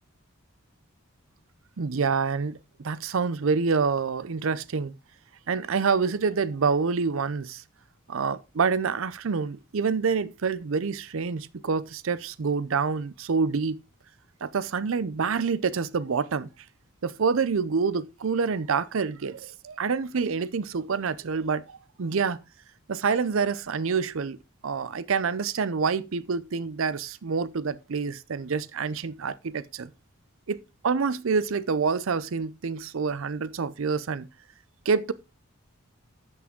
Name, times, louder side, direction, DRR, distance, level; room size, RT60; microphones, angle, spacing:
voice 1, 1.8-4.9 5.5-7.6 8.1-13.8 14.4-16.5 17.0-22.4 22.9-24.4 24.6-29.9 30.5-30.6 30.8-34.3 34.9-35.1, right 5 dB, 70° right, 0.5 m, -27 dB
12.0 x 6.1 x 3.6 m
head